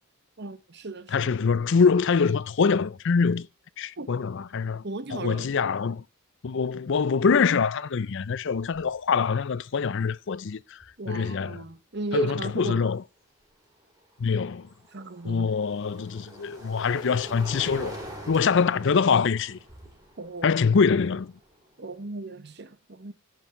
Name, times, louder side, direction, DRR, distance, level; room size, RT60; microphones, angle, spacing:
voice 1, 0.4-1.3 4.0-4.1 4.8-5.5 11.0-12.9 14.9-15.5 18.4-18.5 20.2-20.5 21.8-23.1, right 3 dB, 50° right, 1.0 m, -36 dB
voice 2, 1.1-3.5 3.8-4.8 5.1-6.0 6.4-10.8 11.1-11.6 12.1-13.0 14.2-14.7 15.2-18.0 18.3-19.6 20.4-21.3, left 5 dB, 55° left, 0.5 m, -24 dB
sound 1, 8.2-8.3 8.6-9.0 10.8-10.9 13.9-22.0, right 1 dB, 15° right, 4.9 m, -44 dB
16.5 x 6.3 x 3.7 m
head